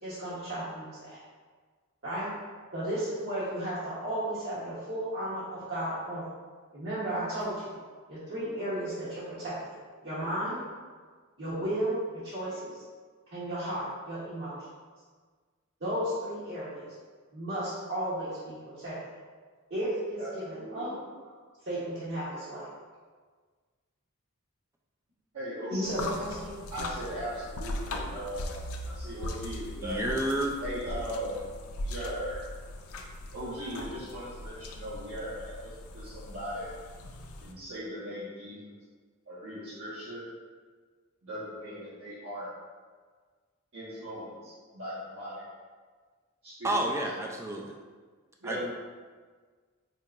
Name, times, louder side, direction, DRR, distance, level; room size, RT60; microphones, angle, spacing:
voice 1, 0.0-1.2 2.0-2.3 2.7-6.3 6.7-7.7 8.1-9.7 10.0-10.6 11.4-12.8 13.3-14.5 15.8-16.9 17.3-19.0 19.7-21.0 21.6-22.7 25.7-26.6, right 1 dB, 50° right, -11 dB, 0.9 m, -34 dB
voice 2, 20.2-21.0 25.3-25.8 26.7-30.0 30.6-31.4 31.8-32.5 33.3-36.7 37.4-38.6 39.3-40.2 41.2-42.5 43.7-45.4 46.4-46.8 48.4-48.7, equal, 75° right, -11 dB, 0.9 m, -38 dB
sound 1, 25.8-37.5, left 1 dB, 80° left, 0.4 m, -39 dB
voice 3, 29.8-30.6 46.6-47.8 48.4-48.7, right 1 dB, 10° right, 0 dB, 0.3 m, -30 dB
4.4 x 2.8 x 2.4 m, 1.5 s
head